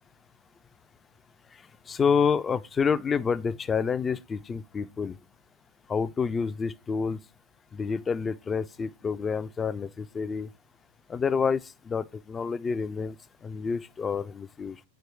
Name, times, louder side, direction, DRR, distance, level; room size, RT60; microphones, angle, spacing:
voice 1, 1.9-5.1 5.9-7.2 7.7-10.5 11.1-13.2 13.4-14.8, left 6 dB, 20° left, 0.3 m, -28 dB
4.7 x 4.5 x 4.9 m
figure-of-eight pair, 90°, 0 cm